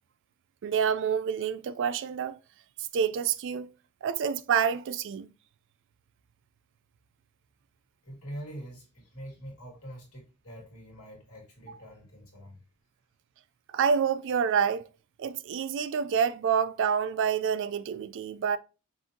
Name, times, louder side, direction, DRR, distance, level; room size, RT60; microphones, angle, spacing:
voice 1, 0.6-2.4 2.8-3.7 4.0-5.3 13.7-14.9 15.2-18.6, right 7 dB, 55° right, 0.3 m, -27 dB
voice 2, 8.0-12.6, equal, 70° left, 2.1 m, -44 dB
5.6 x 2.7 x 2.6 m
head